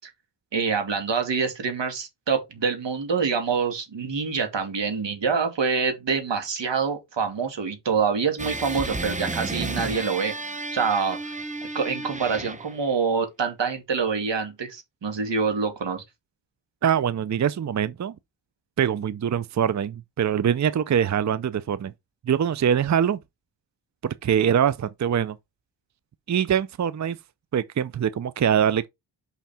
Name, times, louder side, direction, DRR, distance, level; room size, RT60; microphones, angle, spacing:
voice 1, 0.5-10.3 10.7-11.3 11.7-16.0, right 5 dB, 90° right, 2.5 m, -26 dB
sound 1, 8.4-12.9, right 2 dB, 15° right, 0.9 m, -32 dB
voice 2, 16.8-18.1 18.8-21.9 22.3-23.2 24.0-25.4 26.3-27.2 27.5-28.9, right 8 dB, 45° right, 0.5 m, -23 dB
5.8 x 5.7 x 4.3 m
wide cardioid pair, 75°, 42 cm